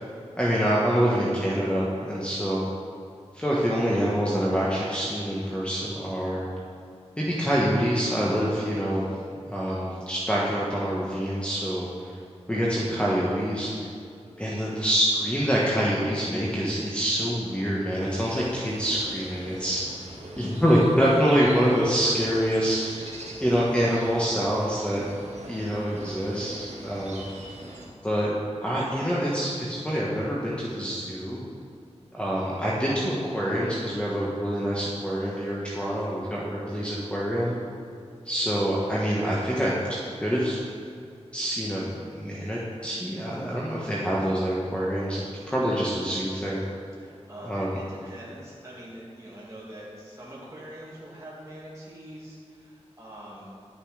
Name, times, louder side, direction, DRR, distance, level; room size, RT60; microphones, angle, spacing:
voice 1, 0.4-2.6 3.3-6.5 7.2-9.1 9.5-12.2 12.5-13.7 14.4-19.8 20.4-22.9 23.4-25.0 25.5-27.5 28.0-28.3 28.6-31.4 32.1-37.6 38.2-39.7 40.2-40.6 41.3-46.6 47.4-47.8, equal, 10° left, -6 dB, 1.4 m, -26 dB
sound 1, 18.1-27.9, right 1 dB, 90° right, 1.7 m, -42 dB
voice 2, 47.0-53.5, right 1 dB, 25° right, -7 dB, 2.1 m, -44 dB
11.0 x 6.9 x 4.9 m, 2.5 s
wide cardioid pair, 75°, 12 cm